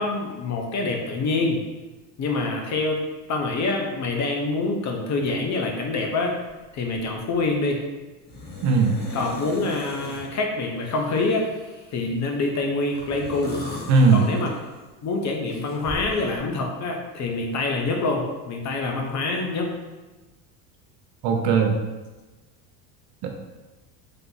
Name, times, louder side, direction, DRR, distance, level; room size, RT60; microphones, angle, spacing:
voice 1, 0.0-1.6 2.2-3.0 3.3-6.4 6.7-7.8 9.1-11.5 11.9-13.6 14.1-14.5 15.0-19.7, left 3 dB, 35° left, 1 dB, 0.7 m, -26 dB
sound 1, 8.3-10.3 10.8-12.2 12.9-14.9 15.5-16.4, left 1 dB, 20° left, 1.1 m, -39 dB
voice 2, 8.6-9.0 13.9-14.2 21.2-21.7 23.2-23.3, right 4 dB, 60° right, 2 dB, 0.9 m, -18 dB
3.3 x 2.8 x 4.0 m, 1.2 s
supercardioid pair, 100°, 49 cm